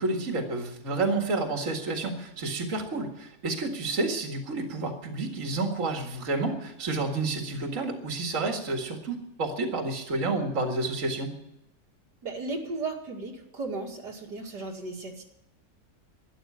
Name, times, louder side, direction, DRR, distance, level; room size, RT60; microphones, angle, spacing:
voice 1, 0.0-11.3, right 3 dB, 50° right, 3 dB, 2.4 m, -30 dB
voice 2, 12.2-15.2, right 3 dB, 85° right, -1 dB, 3.0 m, -35 dB
13.0 x 11.0 x 9.7 m, 0.83 s
omnidirectional pair, 1.7 m